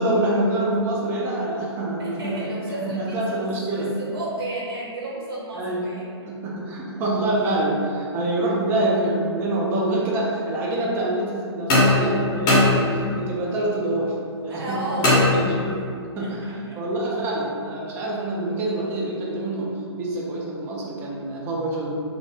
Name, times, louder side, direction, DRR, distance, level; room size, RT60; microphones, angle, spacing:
voice 1, 0.0-2.4 2.8-3.9 5.5-5.9 6.3-14.1 14.4-15.7 16.2-19.7 20.0-21.9, right 1 dB, 15° right, -4 dB, 0.4 m, -26 dB
voice 2, 2.0-6.0 14.5-15.4 16.2-16.8, right 1 dB, 55° right, -5 dB, 0.7 m, -33 dB
sound 1, 11.7-13.3 15.0-16.0, left 2 dB, 25° left, 0.6 m, -20 dB
2.7 x 2.0 x 3.3 m, 2.3 s
figure-of-eight pair, 130°, 15 cm